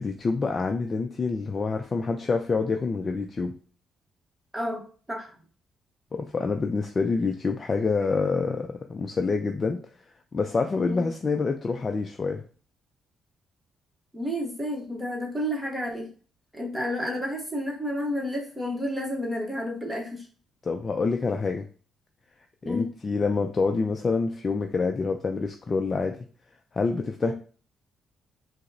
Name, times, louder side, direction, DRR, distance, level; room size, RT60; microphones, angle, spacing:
voice 1, 0.0-3.5 6.1-9.8 10.3-12.4 20.6-21.7 22.7-26.2 26.7-27.3, left 4 dB, 35° left, 4 dB, 0.3 m, -27 dB
voice 2, 4.5-5.4 10.9-11.1 14.1-16.1 16.5-20.3 22.6-22.9 27.2-27.3, equal, 10° right, -1 dB, 0.9 m, -31 dB
4.8 x 2.0 x 2.6 m, 0.40 s
cardioid pair, 90°, 0 cm